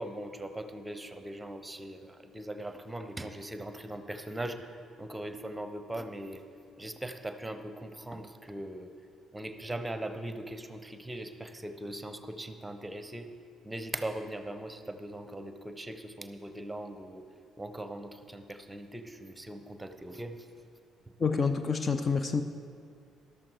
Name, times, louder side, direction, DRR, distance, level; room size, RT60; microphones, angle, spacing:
voice 1, 0.0-6.4 6.8-8.9 9.3-13.3 13.6-17.2 17.6-20.5, right 1 dB, 10° right, 9 dB, 1.1 m, -40 dB
voice 2, 21.2-22.4, left 5 dB, 35° left, 9 dB, 0.6 m, -28 dB
13.5 x 12.0 x 4.8 m, 2.3 s
figure-of-eight pair, 45°, 0 cm